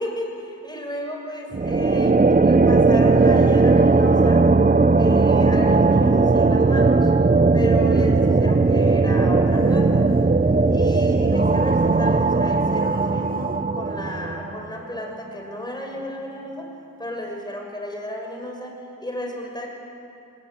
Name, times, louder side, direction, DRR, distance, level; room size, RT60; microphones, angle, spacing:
voice 1, 0.0-4.5 5.0-7.1 7.5-10.1 10.7-16.7 17.0-19.7, left 1 dB, 10° left, 1 dB, 6.0 m, -33 dB
sound 1, 1.5-14.7, right 3 dB, 25° right, 0.8 m, -18 dB
27.0 x 19.0 x 9.0 m, 2.7 s
cardioid pair, 65°, 35 cm